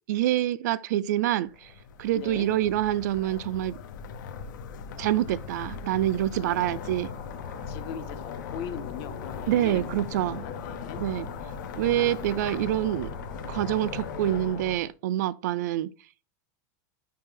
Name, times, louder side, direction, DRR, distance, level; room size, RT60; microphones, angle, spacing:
voice 1, 0.1-1.7 2.0-3.8 5.0-7.1 9.5-10.5 11.0-11.3 11.8-13.1 13.5-15.9, right 13 dB, 65° right, 0.4 m, -26 dB
sound 1, 1.4-14.9, left 5 dB, 80° left, 0.8 m, -40 dB
voice 2, 2.1-2.5 6.3-6.9 7.7-11.0, left 8 dB, 35° left, 0.6 m, -41 dB
sound 2, 6.4-14.7, left 6 dB, 55° left, 1.3 m, -41 dB
5.5 x 5.1 x 3.8 m
supercardioid pair, 180°, 10 cm